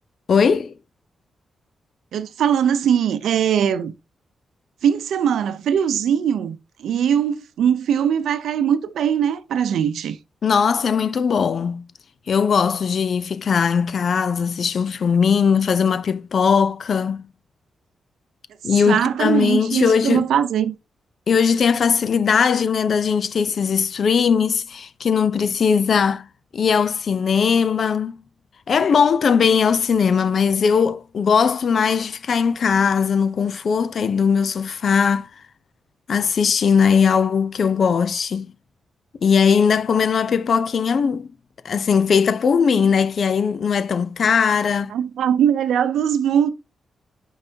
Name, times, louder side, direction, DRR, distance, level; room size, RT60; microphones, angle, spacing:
voice 1, 0.3-0.7 10.4-11.8 12.3-17.3 18.6-20.3 21.3-26.3 26.5-28.2 28.7-35.3 36.1-38.5 39.2-41.3 41.6-44.9, left 6 dB, 55° left, 0.6 m, -19 dB
voice 2, 2.1-3.9 4.8-10.2 18.9-20.8 44.9-46.5, right 8 dB, 85° right, 0.6 m, -21 dB
9.0 x 5.5 x 2.8 m
cardioid pair, 110°, 0 cm